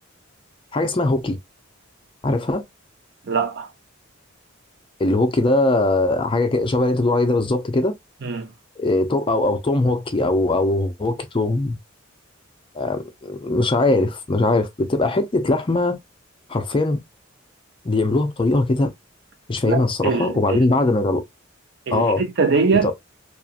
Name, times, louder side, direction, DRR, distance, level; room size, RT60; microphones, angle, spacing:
voice 1, 0.7-1.4 2.2-2.6 5.0-7.9 8.8-11.8 12.7-16.0 16.5-17.0 17.8-18.9 19.5-21.2 21.9-22.2 22.8-22.9, left 2 dB, 25° left, 0.5 m, -20 dB
voice 2, 3.3-3.7 8.2-8.5 19.7-20.6 21.9-22.9, right 4 dB, 60° right, 0.6 m, -22 dB
2.8 x 2.4 x 2.3 m
head